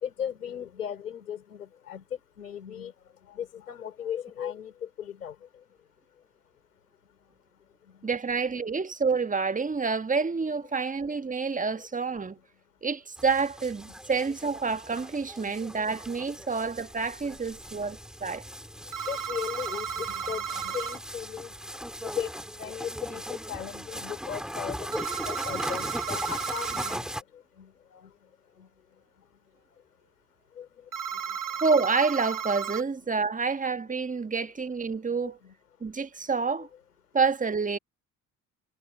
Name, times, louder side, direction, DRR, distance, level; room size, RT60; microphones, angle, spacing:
voice 1, 0.0-2.0 2.4-2.9 3.3-4.7 5.0-5.3 15.4-15.5 19.1-21.5 22.0-22.3 22.6-27.0 27.6-28.1 30.6-30.7 35.2-35.5 36.6-36.7, left 9 dB, 85° left, 4.1 m, -37 dB
voice 2, 8.0-12.4 12.8-18.4 31.6-35.4 35.8-36.7 37.1-37.8, right 4 dB, 15° right, 1.6 m, -28 dB
sound 1, 13.2-27.2, equal, ahead, 5.5 m, -39 dB
sound 2, 18.9-21.0 24.9-27.0 30.9-32.8, right 7 dB, 45° right, 3.9 m, -34 dB
figure-of-eight pair, 55°, 44 cm